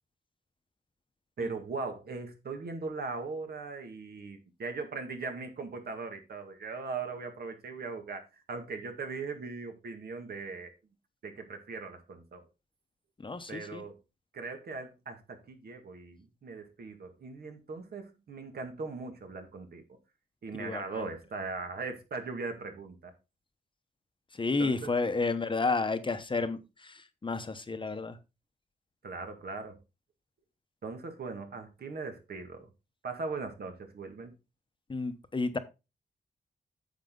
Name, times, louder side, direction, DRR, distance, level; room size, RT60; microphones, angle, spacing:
voice 1, 1.4-10.7 11.2-12.4 13.5-14.0 14.3-19.8 20.4-23.1 24.6-24.9 29.0-29.8 30.8-32.7 33.0-34.3, right 4 dB, 65° right, 2.0 m, -39 dB
voice 2, 13.2-13.8 20.6-21.0 24.4-28.2 34.9-35.6, left 3 dB, 30° left, 0.9 m, -31 dB
9.4 x 6.5 x 3.8 m
wide cardioid pair, 110°, 17 cm